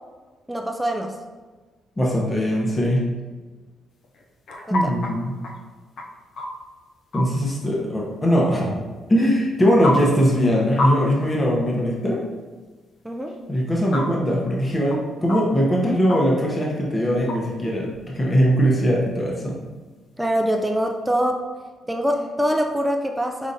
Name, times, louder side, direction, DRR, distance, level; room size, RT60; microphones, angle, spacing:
voice 1, 0.5-1.2 13.0-13.4 20.2-21.4 21.9-23.5, equal, 10° right, 3 dB, 0.4 m, -23 dB
voice 2, 2.0-3.1 4.7-5.3 7.1-8.8 9.1-12.3 13.5-19.6, equal, 20° left, -3 dB, 0.9 m, -21 dB
sound 1, 4.0-5.1 5.4-5.6 6.0-6.7 7.1-7.2 9.3-9.4 9.8-9.9 10.3-10.4 10.8-10.9 11.2-11.3 13.3-13.4 13.9-14.0 14.6-14.7 14.9-15.0 15.3-15.4 16.1-16.2 17.3-17.4 17.7-17.8, left 2 dB, 65° left, 0.6 m, -26 dB
5.1 x 3.6 x 2.7 m, 1.3 s
cardioid pair, 90°, 0 cm